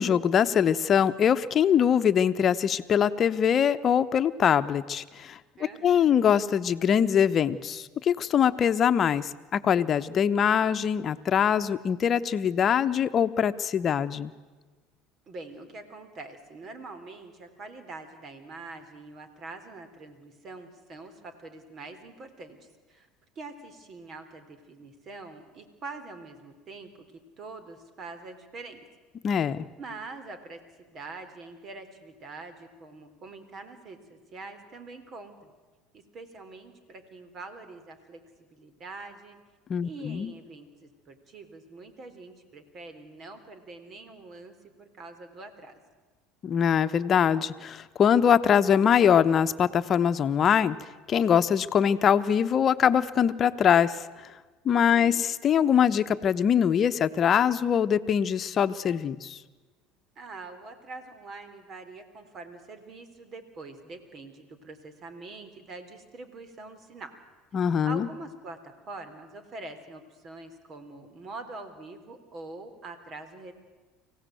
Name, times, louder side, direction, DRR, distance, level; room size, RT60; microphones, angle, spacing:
voice 1, 0.0-5.4 5.8-14.3 29.2-29.7 39.7-40.3 46.4-50.8 51.1-54.0 54.6-59.4 67.5-68.1, left 8 dB, 40° left, 10 dB, 1.1 m, -23 dB
voice 2, 5.6-6.2 15.3-23.1 23.4-27.1 27.3-28.9 29.8-35.5 35.9-38.2 38.5-39.4 39.8-45.8 54.9-55.2 60.2-67.1 67.6-73.5, right 3 dB, 45° right, 10 dB, 3.6 m, -44 dB
24.5 x 17.0 x 9.2 m, 1.3 s
hypercardioid pair, 80°, 0 cm